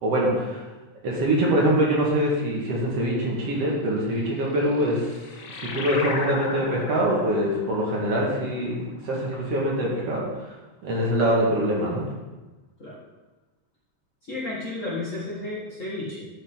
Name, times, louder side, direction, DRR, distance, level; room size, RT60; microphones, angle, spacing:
voice 1, 0.0-0.6 1.0-5.1 5.6-8.8 9.0-10.2 10.8-12.0, right 1 dB, 60° right, -4 dB, 2.6 m, -24 dB
sound 1, 4.6-9.6, left 4 dB, 80° left, 0.9 m, -36 dB
voice 2, 14.3-16.3, left 2 dB, 30° left, -8 dB, 1.6 m, -32 dB
11.5 x 5.3 x 3.7 m, 1.2 s
omnidirectional pair, 3.3 m